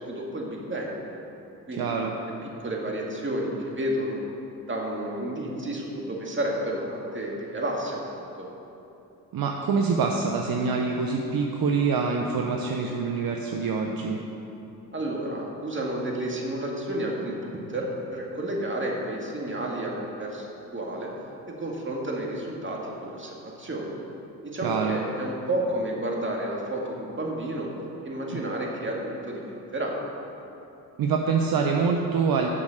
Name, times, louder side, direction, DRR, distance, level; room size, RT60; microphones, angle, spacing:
voice 1, 0.1-1.1 1.7-2.1 2.4-4.2 4.7-8.5 14.9-21.1 21.5-23.9 24.4-27.7 28.0-29.9, right 1 dB, 25° right, -2 dB, 2.1 m, -31 dB
voice 2, 1.7-2.1 9.3-14.2 24.6-25.0 28.3-28.4 31.0-32.5, right 5 dB, 55° right, 1 dB, 0.8 m, -25 dB
7.4 x 6.1 x 6.6 m, 2.9 s
hypercardioid pair, 50°, 42 cm